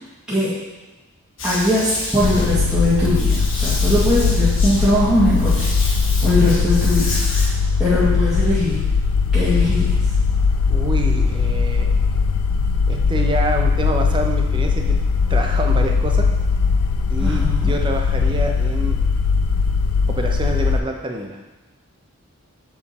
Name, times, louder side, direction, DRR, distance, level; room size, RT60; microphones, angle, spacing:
sound 1, 1.4-7.5, left 2 dB, 60° left, 1.4 m, -30 dB
voice 1, 1.4-5.7 6.2-7.1 7.8-8.8 9.3-10.0 17.2-17.7, left 1 dB, 5° right, -12 dB, 1.7 m, -20 dB
sound 2, 2.2-20.8, left 5 dB, 90° left, 0.4 m, -19 dB
voice 2, 10.7-11.9 12.9-14.9 15.3-16.3 17.1-19.0 20.1-21.4, right 1 dB, 20° right, 2 dB, 0.6 m, -26 dB
7.5 x 4.7 x 4.2 m, 1.1 s
head